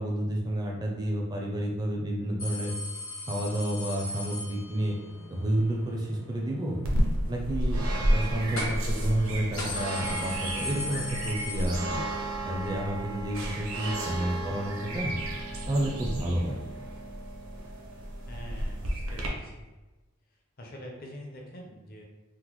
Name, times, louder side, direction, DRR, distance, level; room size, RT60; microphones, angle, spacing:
voice 1, 0.0-2.7 3.3-5.0 5.3-6.8 7.3-7.8 8.1-12.0 12.4-15.1 15.7-16.6, right 1 dB, 20° right, -1 dB, 0.4 m, -30 dB
sound 1, 2.4-5.1 8.6-9.0 9.2-9.3 9.6-12.3 12.6-12.7 13.8-13.9, left 2 dB, 65° left, 1.2 m, -38 dB
sound 2, 3.6-8.7, equal, 80° left, 0.8 m, -51 dB
sound 3, 6.8-19.3, right 1 dB, 75° right, 0.6 m, -31 dB
voice 2, 18.3-19.7 20.6-22.0, equal, 40° left, 0 dB, 0.6 m, -45 dB
3.7 x 2.1 x 3.0 m, 1.1 s
head